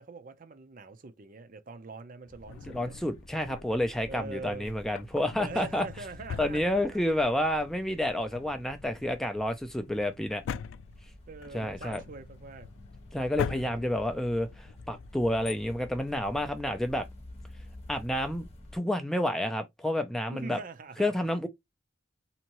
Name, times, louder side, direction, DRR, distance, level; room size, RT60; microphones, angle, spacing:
voice 1, 0.0-3.0 4.1-4.8 5.4-7.2 11.3-12.7 13.4-13.9 20.3-21.1, right 3 dB, 45° right, 0.6 m, -43 dB
sound 1, 2.3-18.8, left 1 dB, 35° left, 1.2 m, -50 dB
Drawer open or close, 2.5-4.0 4.8-7.3 7.6-7.7 8.2-16.9, left 7 dB, 90° left, 0.3 m, -42 dB
voice 2, 2.7-5.9 6.4-10.4 11.5-12.0 13.1-17.1 17.9-18.4 18.7-20.6 21.0-21.5, left 1 dB, ahead, 0.4 m, -29 dB
3.5 x 2.8 x 2.9 m
head